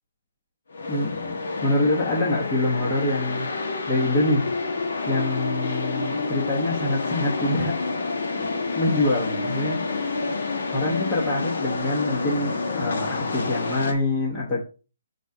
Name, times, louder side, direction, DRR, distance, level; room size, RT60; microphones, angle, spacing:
sound 1, 0.7-13.9, left 3 dB, 70° left, 1.3 m, -28 dB
voice 1, 0.9-3.5 3.9-4.4 5.1-7.8 8.4-8.5 8.7-9.8 10.7-14.6, left 2 dB, 20° left, -5 dB, 1.1 m, -25 dB
5.5 x 4.0 x 4.8 m, 0.34 s
hypercardioid pair, 170°, 0 cm